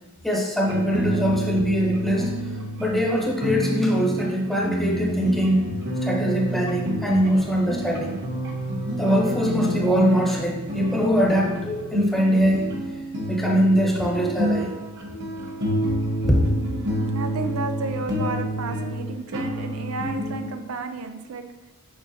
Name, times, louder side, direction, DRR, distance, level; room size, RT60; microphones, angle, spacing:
voice 1, 0.2-5.7 6.0-8.2 9.0-12.7 13.3-14.7 16.2-16.5, equal, ahead, -2 dB, 1.0 m, -22 dB
sound 1, 0.6-20.5, equal, 55° right, 1.0 m, -29 dB
voice 2, 16.4-21.4, right 4 dB, 75° right, 7 dB, 0.5 m, -32 dB
6.5 x 5.7 x 2.8 m, 1.1 s
head